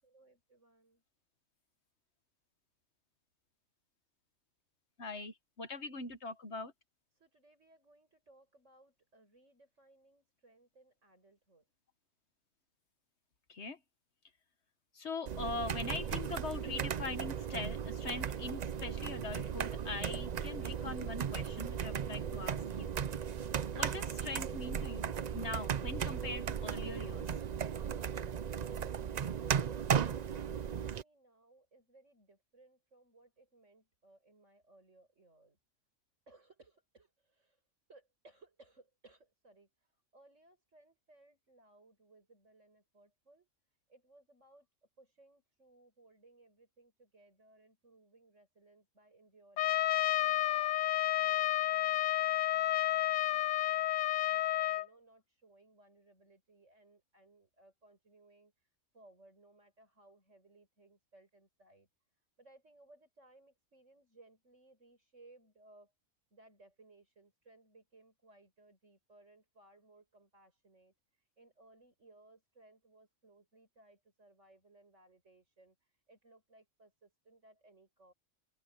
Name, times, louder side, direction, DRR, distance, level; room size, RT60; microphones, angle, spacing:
voice 1, 0.0-1.0 7.2-11.7 28.2-35.6 36.3-37.6 37.9-39.7 40.1-43.5 43.9-44.7 45.0-49.8 50.1-53.9 54.3-58.5 58.9-61.9 62.4-65.9 66.3-70.9 71.4-75.8 76.1-78.1, right 2 dB, 70° right, 7.1 m, -63 dB
voice 2, 5.0-6.7 13.5-13.8 14.9-22.9 23.7-27.2, left 3 dB, 60° left, 1.6 m, -42 dB
sound 1, 15.3-31.0, right 8 dB, 50° right, 0.5 m, -36 dB
Trumpet, 49.6-54.9, left 14 dB, 75° left, 0.9 m, -31 dB
open air
omnidirectional pair, 1.3 m